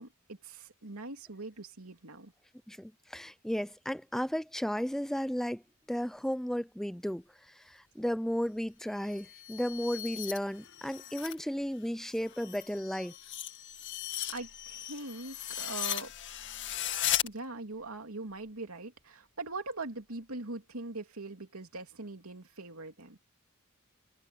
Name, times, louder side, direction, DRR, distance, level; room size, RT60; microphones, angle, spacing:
voice 1, 0.0-2.3 14.3-16.1 17.2-23.2, right 2 dB, 85° right, 2.9 m, -42 dB
voice 2, 2.7-5.6 5.9-13.1, equal, ahead, 0.5 m, -34 dB
sound 1, 9.0-11.4 11.8-17.3, left 11 dB, 60° left, 2.0 m, -37 dB
head